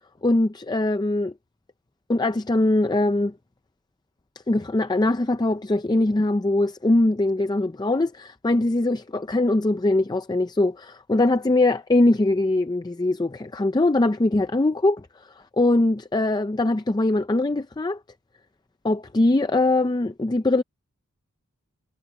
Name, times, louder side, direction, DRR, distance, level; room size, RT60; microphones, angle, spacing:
voice 1, 0.2-1.3 2.1-3.4 4.5-18.0 18.8-20.6, left 2 dB, 20° left, 0.4 m, -22 dB
head